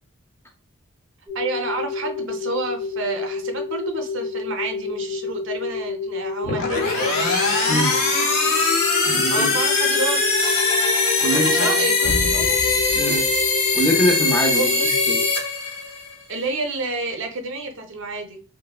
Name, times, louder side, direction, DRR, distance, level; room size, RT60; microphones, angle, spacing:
sound 1, 1.3-15.3, left 4 dB, 10° right, 0.8 m, -29 dB
voice 1, 1.3-7.4 9.1-10.2 11.3-12.6 13.0-13.2 14.5-14.9 16.3-18.4, right 2 dB, 60° right, 0.5 m, -29 dB
sound 2, 6.4-16.1, left 3 dB, 85° left, 0.9 m, -21 dB
voice 2, 9.1-9.6 11.2-11.5 12.9-13.2 13.7-15.3, equal, 10° left, 0.5 m, -23 dB
sound 3, 10.4-14.0, left 3 dB, 65° left, 0.4 m, -31 dB
3.2 x 2.1 x 2.2 m
head